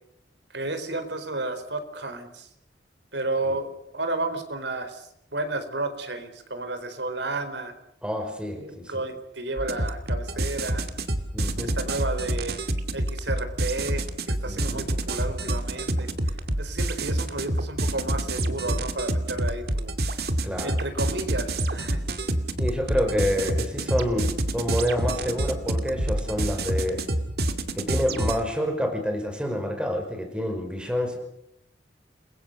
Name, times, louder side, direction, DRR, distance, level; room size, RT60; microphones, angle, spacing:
voice 1, 0.5-2.5 3.1-7.7 8.6-10.9 11.6-12.6 12.9-16.1 16.6-19.9 20.6-22.1, right 2 dB, 70° right, 9 dB, 4.4 m, -32 dB
voice 2, 8.0-8.9 11.3-11.7 14.5-14.8 20.4-20.7 22.6-27.0 27.7-31.2, equal, 5° right, 4 dB, 5.5 m, -28 dB
sound 1, 9.6-28.4, right 1 dB, 55° right, 2.4 m, -28 dB
30.0 x 22.5 x 6.8 m, 0.77 s
head